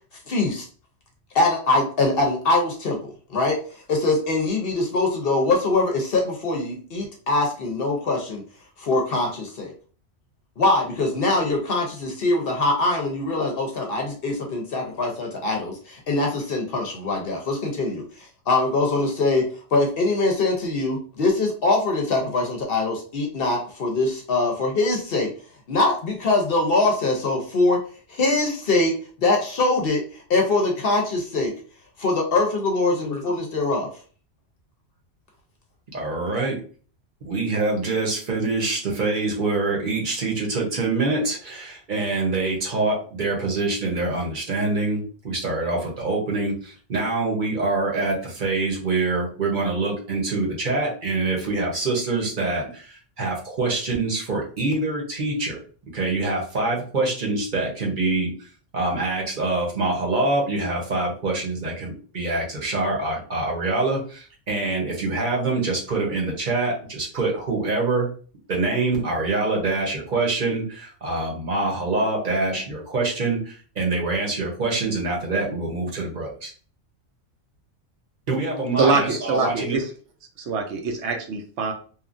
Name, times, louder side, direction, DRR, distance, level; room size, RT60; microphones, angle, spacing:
voice 1, 0.3-0.7 1.3-8.4 8.8-9.7 10.6-25.3 25.7-27.8 28.1-31.5 32.0-33.9, left 2 dB, 60° left, 1 dB, 0.7 m, -23 dB
voice 2, 35.9-36.6 37.2-55.6 55.9-58.3 58.7-68.1 68.5-76.5 78.3-79.8, right 3 dB, 45° right, -2 dB, 1.0 m, -25 dB
voice 3, 78.8-79.9 80.4-81.7, right 4 dB, 70° right, 3 dB, 0.9 m, -23 dB
2.9 x 2.3 x 2.5 m, 0.41 s
omnidirectional pair, 1.3 m